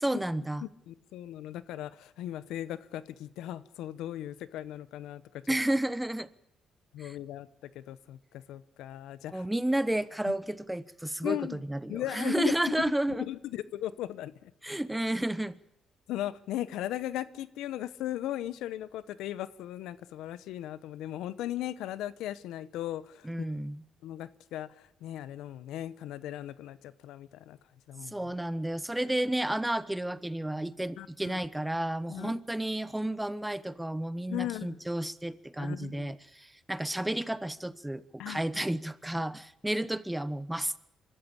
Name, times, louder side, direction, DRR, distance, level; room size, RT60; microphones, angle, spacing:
voice 1, 0.0-0.7 5.5-6.3 7.0-7.2 9.3-13.3 14.6-15.5 23.2-23.8 28.0-40.8, right 1 dB, 10° right, 17 dB, 1.0 m, -31 dB
voice 2, 0.6-5.2 6.9-9.4 10.3-10.4 11.2-11.6 11.9-12.8 13.1-14.5 16.1-23.3 24.0-27.6 27.9-28.1 31.0-31.4 32.1-32.4 34.3-34.8 35.6-36.2 38.2-38.4, left 13 dB, 90° left, 17 dB, 0.9 m, -37 dB
24.5 x 13.5 x 8.7 m, 0.82 s
cardioid pair, 90°, 0 cm